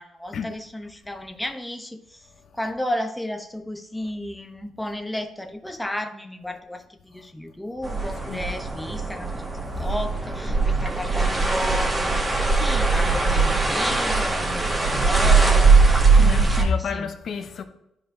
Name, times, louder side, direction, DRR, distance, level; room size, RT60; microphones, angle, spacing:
voice 1, 0.0-2.2 2.5-9.3 9.8-17.1, left 1 dB, 5° left, 0.8 m, -33 dB
sound 1, 7.8-16.6, right 4 dB, 20° right, 1.7 m, -20 dB
voice 2, 16.2-17.6, left 5 dB, 55° left, 0.8 m, -29 dB
11.5 x 5.1 x 2.7 m
cardioid pair, 90°, 0 cm